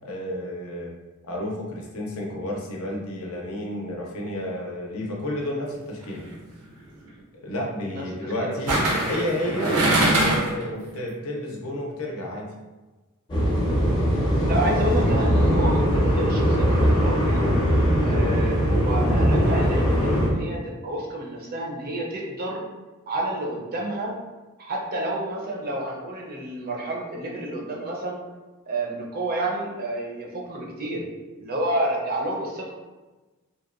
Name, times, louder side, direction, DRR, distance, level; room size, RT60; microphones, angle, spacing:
voice 1, 0.0-0.9 1.3-6.2 7.3-8.8 9.0-9.7 10.1-12.5, left 1 dB, 70° left, -1 dB, 0.5 m, -31 dB
sound 1, 6.0-6.3 8.7-10.6 11.0-11.1, right 1 dB, 90° right, 0.7 m, -22 dB
voice 2, 7.9-9.3 14.4-17.5 18.0-22.6 23.1-24.1 24.6-28.2 28.7-31.0 31.4-32.7, right 1 dB, 40° right, -1 dB, 0.5 m, -30 dB
sound 2, 13.3-20.3, equal, 20° left, 0.6 m, -21 dB
2.8 x 2.1 x 2.3 m, 1.2 s
head